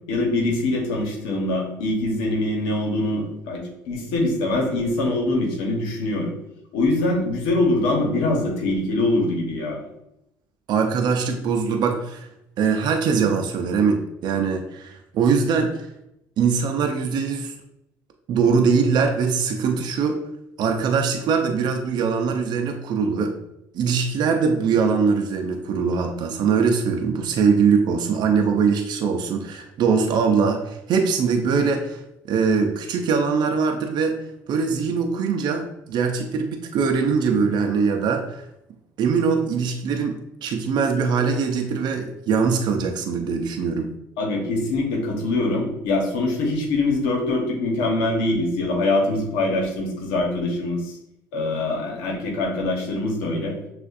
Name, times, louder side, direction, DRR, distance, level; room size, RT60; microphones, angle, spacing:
voice 1, 0.1-6.3 6.7-9.8 44.2-50.9 51.3-53.5, left 2 dB, 85° left, 0 dB, 1.1 m, -23 dB
voice 2, 10.7-12.3 12.6-15.9 16.4-17.5 18.3-20.2 20.6-23.3 23.7-32.0 32.3-34.2 34.5-38.4 39.0-43.9, right 5 dB, 60° right, 4 dB, 0.6 m, -22 dB
6.2 x 2.5 x 2.6 m, 0.84 s
supercardioid pair, 80°, 8 cm